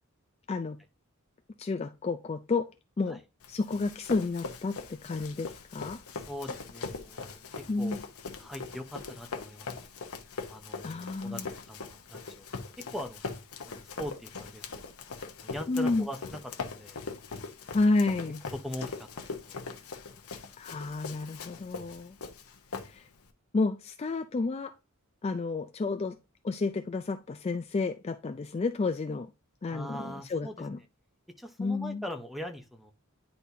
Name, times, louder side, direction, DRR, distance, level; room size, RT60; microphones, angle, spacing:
voice 1, 0.5-0.8 1.6-2.7 3.0-3.2 3.5-6.0 7.7-8.0 10.8-11.5 15.7-16.1 17.7-18.4 20.6-22.2 22.8-23.1 23.5-24.7 25.2-26.2 26.4-29.3 29.6-30.8 31.6-32.0, left 3 dB, 30° left, 0.3 m, -31 dB
Run, 3.4-23.3, left 4 dB, 85° left, 0.9 m, -41 dB
voice 2, 6.1-8.0 8.4-9.9 10.5-11.4 11.7-12.5 12.8-13.3 13.6-14.9 15.4-17.0 18.6-19.7 29.7-30.6 31.4-32.9, equal, ahead, 0.8 m, -41 dB
9.9 x 4.2 x 2.7 m
head